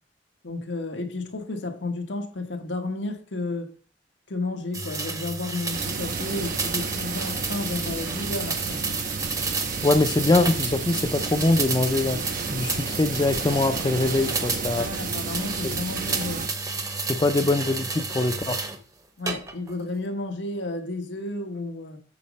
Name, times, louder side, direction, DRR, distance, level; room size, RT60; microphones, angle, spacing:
voice 1, 0.4-3.7 4.3-8.8 14.7-16.5 17.4-17.5 19.2-22.0, left 2 dB, 90° left, 1.3 m, -32 dB
sound 1, 4.7-18.8 19.3-19.8, right 4 dB, 20° right, 0.8 m, -31 dB
sound 2, 5.7-16.5, right 5 dB, 50° right, 0.5 m, -33 dB
voice 2, 9.8-12.2 12.5-14.9 15.6-15.7 17.1-18.6, left 2 dB, 25° left, 0.4 m, -23 dB
8.6 x 4.1 x 5.2 m
head